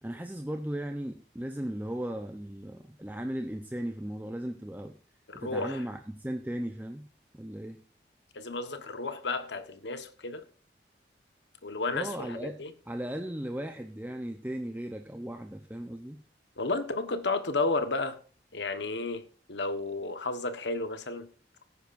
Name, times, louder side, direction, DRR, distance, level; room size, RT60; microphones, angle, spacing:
voice 1, 0.0-4.9 5.3-7.0 7.3-7.8 11.9-16.2, right 1 dB, 10° right, 0.7 m, -37 dB
voice 2, 5.3-5.8 8.3-10.4 11.6-12.7 16.6-18.2 18.5-19.2 19.5-21.3, left 3 dB, 75° left, 1.3 m, -32 dB
17.0 x 9.4 x 2.6 m
head